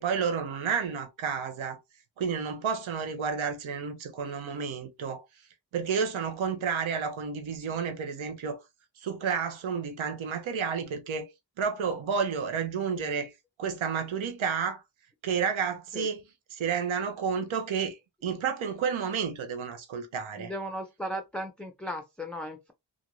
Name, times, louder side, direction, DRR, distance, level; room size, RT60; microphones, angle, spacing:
voice 1, 0.0-1.8 2.2-5.2 5.7-8.6 9.0-11.3 11.6-13.3 13.6-14.8 15.2-16.2 16.5-20.5, right 6 dB, 85° right, 0.7 m, -31 dB
voice 2, 20.4-22.7, equal, ahead, 0.4 m, -36 dB
2.5 x 2.5 x 2.9 m
cardioid pair, 40°, 47 cm